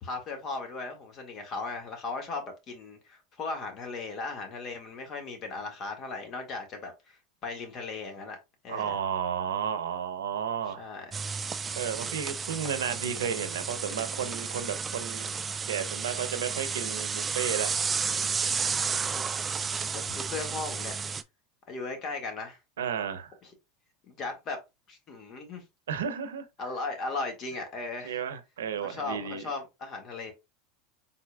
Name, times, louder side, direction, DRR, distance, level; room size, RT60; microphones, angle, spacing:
voice 1, 0.0-8.4 8.6-9.0 10.8-11.1 18.7-19.4 19.9-21.0 21.7-22.6 23.4-23.5 24.1-24.6 24.9-25.6 26.6-28.2 28.8-30.3, left 3 dB, 45° left, 1.8 m, -37 dB
voice 2, 8.7-10.9 11.7-15.3 15.7-17.7 22.8-23.3 25.9-26.4 28.0-29.5, right 8 dB, 85° right, 0.7 m, -33 dB
sound 1, 11.1-21.2, right 5 dB, 25° right, 0.4 m, -32 dB
4.3 x 4.0 x 2.3 m
hypercardioid pair, 95°, 0 cm